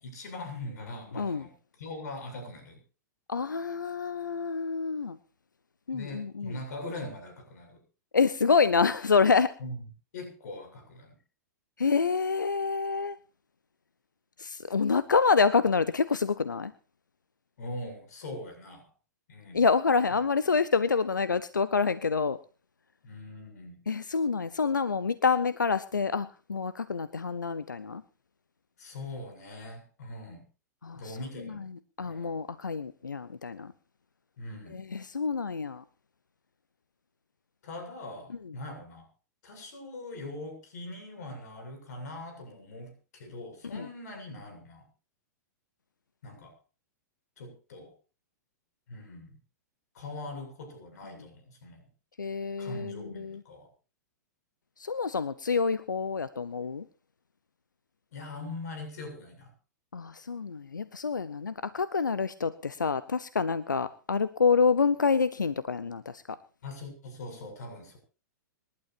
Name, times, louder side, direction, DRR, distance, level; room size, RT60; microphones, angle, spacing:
voice 1, 0.0-1.5 1.8-2.8 5.9-7.8 9.6-9.8 10.1-11.1 17.6-18.9 19.3-19.6 23.0-23.8 28.8-30.4 30.9-31.6 32.0-32.3 34.4-34.8 37.6-39.1 39.4-44.8 46.2-46.6 47.4-47.9 48.9-49.4 49.9-51.9 52.6-53.7 58.1-59.5 66.6-68.0, left 2 dB, 60° left, 5 dB, 7.4 m, -41 dB
voice 2, 3.3-5.2 5.9-6.6 8.1-9.5 11.8-13.2 14.4-16.7 19.5-22.4 23.9-28.0 30.8-33.7 34.7-35.8 43.7-43.9 52.2-53.4 54.8-56.9 59.9-66.4, left 5 dB, 85° left, 15 dB, 0.8 m, -27 dB
26.5 x 12.0 x 2.8 m, 0.34 s
figure-of-eight pair, 105°, 10 cm